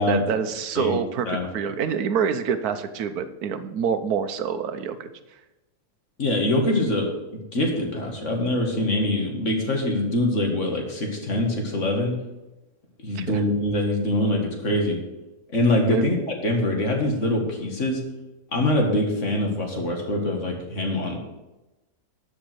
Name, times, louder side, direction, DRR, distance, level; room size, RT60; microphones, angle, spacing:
voice 1, 0.0-1.3 1.5-5.1 13.1-13.4 15.9-16.1, right 7 dB, 65° right, 10 dB, 1.3 m, -26 dB
voice 2, 6.2-7.1 7.5-12.1 13.0-15.0 15.5-16.2 16.4-18.0 18.5-21.2, left 1 dB, 45° left, 1 dB, 2.3 m, -24 dB
12.0 x 5.2 x 7.9 m, 1.0 s
omnidirectional pair, 1.8 m